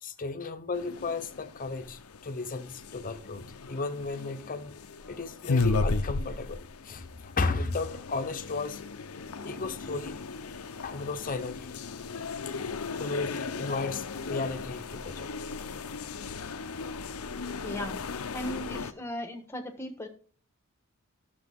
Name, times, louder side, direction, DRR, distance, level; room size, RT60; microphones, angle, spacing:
voice 1, 0.0-4.7 5.1-8.8 9.4-10.2 10.8-11.8 13.0-15.3 16.2-16.4, left 3 dB, 40° left, 0.9 m, -34 dB
Tate Britain gallery lobby ambience, 0.7-18.9, left 4 dB, 85° left, 0.7 m, -36 dB
voice 2, 17.6-18.0 18.3-20.1, equal, 10° left, 1.4 m, -37 dB
12.0 x 6.8 x 3.6 m
head